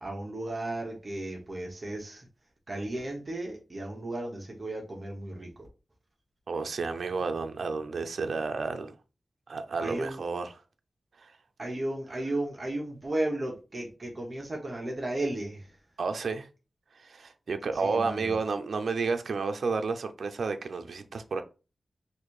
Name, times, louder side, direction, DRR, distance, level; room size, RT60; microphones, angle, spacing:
voice 1, 0.0-2.3 2.7-5.7 9.8-10.2 11.6-15.8 17.7-18.4, right 1 dB, 35° right, 1.1 m, -34 dB
voice 2, 6.5-9.0 9.5-10.5 11.2-11.3 16.0-16.5 17.0-21.4, right 4 dB, 80° right, 0.5 m, -31 dB
4.1 x 2.6 x 4.7 m
wide cardioid pair, 125°, 0 cm